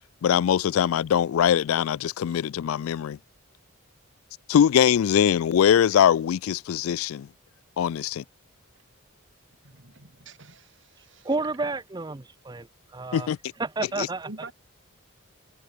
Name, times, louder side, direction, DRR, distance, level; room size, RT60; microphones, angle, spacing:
voice 1, 0.2-3.2 4.5-7.3 7.8-8.2 13.1-13.4 14.0-14.1, left 9 dB, 75° left, 0.3 m, -22 dB
voice 2, 9.6-11.3 14.3-14.5, right 2 dB, 60° right, 2.9 m, -46 dB
voice 3, 11.0-13.3 13.6-14.5, right 3 dB, 20° right, 0.6 m, -31 dB
head